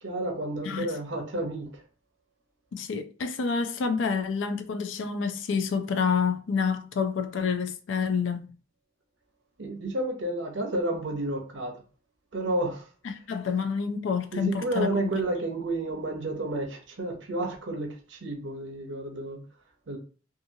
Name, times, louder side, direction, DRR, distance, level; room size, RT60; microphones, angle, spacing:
voice 1, 0.0-1.8 9.6-11.8 12.3-12.9 14.3-19.4 19.9-20.0, right 1 dB, 75° right, 0.7 m, -31 dB
voice 2, 2.7-8.5 13.0-15.2, left 5 dB, 85° left, 0.4 m, -28 dB
2.7 x 2.4 x 2.7 m
head